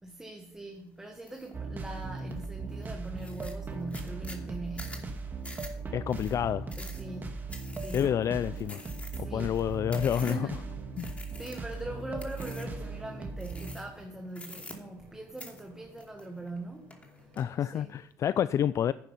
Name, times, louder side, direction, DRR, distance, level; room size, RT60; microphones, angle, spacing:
voice 1, 0.0-5.2 6.8-7.4 7.8-8.1 9.1-9.6 10.1-10.5 11.0-17.3 17.6-18.0, right 2 dB, 10° right, 1.9 m, -42 dB
sound 1, 1.3-1.5 2.0-2.4 2.8-2.9 3.2-10.6 11.0-11.8 12.2-12.8 13.4-14.0 14.3-15.1 15.4-16.6 16.9-17.4, left 2 dB, 20° left, 2.9 m, -47 dB
sound 2, 1.5-13.7, right 3 dB, 30° right, 2.1 m, -38 dB
voice 2, 5.9-6.7 7.9-8.8 9.2-10.4 11.0-11.1 17.4-18.9, left 9 dB, 50° left, 0.4 m, -28 dB
Drum, 11.5-17.6, equal, 55° right, 2.7 m, -57 dB
11.0 x 9.6 x 5.6 m
supercardioid pair, 80°, 7 cm